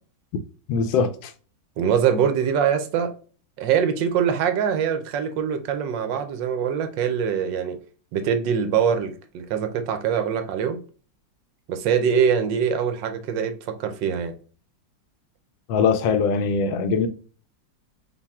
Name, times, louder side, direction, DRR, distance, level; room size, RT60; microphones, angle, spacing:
voice 1, 0.7-1.3 15.7-17.1, left 5 dB, 90° left, 1.3 m, -21 dB
voice 2, 1.8-3.1 3.6-7.8 8.1-10.8 11.7-14.3, right 7 dB, 80° right, 1.3 m, -23 dB
5.5 x 2.4 x 3.5 m
omnidirectional pair, 2.0 m